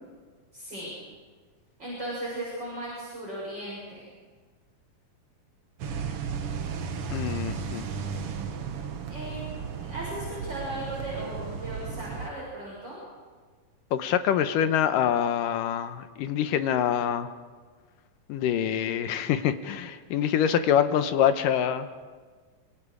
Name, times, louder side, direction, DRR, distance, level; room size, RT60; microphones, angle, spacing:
voice 1, 0.5-0.9 1.8-4.1 9.1-9.4 9.8-13.0, right 1 dB, 30° right, -7 dB, 7.9 m, -37 dB
sound 1, 5.8-12.3, right 6 dB, 55° right, 1.7 m, -34 dB
voice 2, 7.1-7.9 13.9-17.3 18.3-21.9, left 9 dB, 80° left, 10 dB, 2.5 m, -25 dB
26.0 x 25.5 x 5.0 m, 1.5 s
omnidirectional pair, 3.9 m